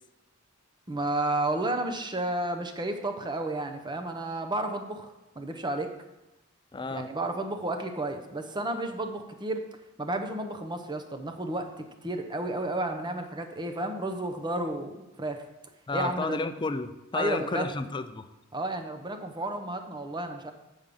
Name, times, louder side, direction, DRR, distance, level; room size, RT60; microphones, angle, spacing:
voice 1, 0.9-5.1 5.3-5.9 6.9-9.6 10.0-15.4 15.9-16.4 17.1-17.7 18.5-20.5, right 2 dB, 20° right, 6 dB, 0.8 m, -32 dB
voice 2, 6.7-7.1 15.9-18.3, left 3 dB, 20° left, 10 dB, 0.4 m, -32 dB
7.2 x 6.6 x 5.3 m, 0.98 s
head